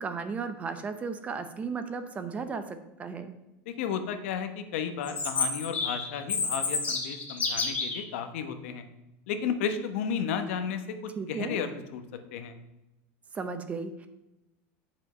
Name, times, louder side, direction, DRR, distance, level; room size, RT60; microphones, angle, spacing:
voice 1, 0.0-3.3 11.2-11.6 13.3-14.1, right 5 dB, 20° right, 10 dB, 0.7 m, -35 dB
voice 2, 3.7-8.8 9.3-10.8 11.3-12.0 12.3-12.5, left 7 dB, 85° left, 8 dB, 1.0 m, -33 dB
Chirp tweet, 5.0-8.0, left 4 dB, 20° left, 1.5 m, -29 dB
7.3 x 5.3 x 5.5 m, 0.94 s
supercardioid pair, 155°, 7 cm